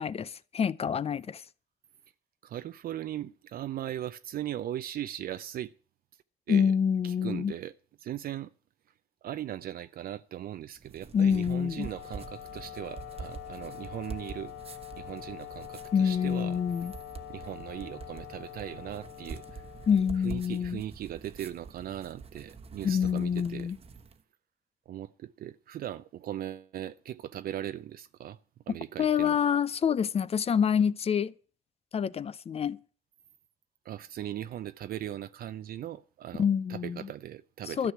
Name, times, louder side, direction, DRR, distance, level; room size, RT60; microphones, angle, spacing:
voice 1, 0.0-1.4 6.5-7.5 11.1-11.9 15.9-16.9 19.9-20.8 22.8-23.8 29.0-31.3 31.9-32.8 36.4-37.1 37.8-37.9, left 7 dB, 35° left, 0.6 m, -27 dB
voice 2, 2.4-5.7 6.5-6.7 7.0-7.7 8.0-8.5 9.2-14.5 15.0-16.6 17.3-19.7 20.2-23.7 24.9-28.4 28.7-29.4 33.8-37.9, right 12 dB, 60° right, 0.5 m, -39 dB
sound 1, 10.8-24.2, right 5 dB, 35° right, 1.1 m, -46 dB
Wind instrument woodwind instrument, 11.4-20.7, left 14 dB, 80° left, 2.4 m, -45 dB
13.0 x 6.3 x 9.3 m
cardioid pair, 110°, 17 cm